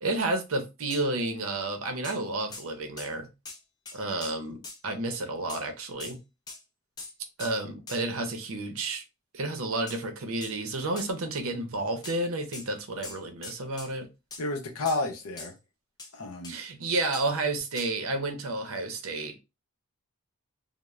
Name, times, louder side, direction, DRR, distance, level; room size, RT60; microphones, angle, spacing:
voice 1, 0.0-3.3 3.9-6.2 7.4-9.0 9.3-14.1 16.5-19.4, right 2 dB, 70° right, 0.6 m, -31 dB
sound 1, 0.9-1.0 2.0-2.2 2.5-2.7 3.0-3.1 3.5-3.6 3.9-4.8 5.5-5.7 6.0-6.2 6.5-6.6 7.0-7.1 7.4-7.5 7.9-8.0 9.9-10.0 10.4-10.6 11.0-11.1 12.0-12.2 12.5-12.7 13.0-13.9 14.3-14.4 14.9-15.0 15.4-15.5 16.0-16.1 16.4-16.6 17.1-17.3 17.8-17.9, left 3 dB, 20° left, 0.3 m, -42 dB
voice 2, 14.4-15.5 16.1-16.5, left 2 dB, 85° left, 0.6 m, -31 dB
3.0 x 2.0 x 2.3 m
head